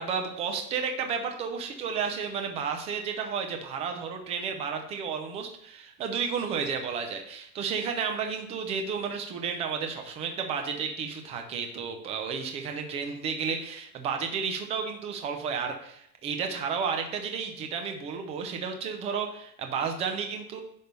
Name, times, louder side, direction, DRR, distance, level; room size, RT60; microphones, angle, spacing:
voice 1, 0.0-20.6, right 6 dB, 15° right, 5 dB, 0.6 m, -32 dB
10.5 x 3.5 x 6.7 m, 0.72 s
supercardioid pair, 170°, 46 cm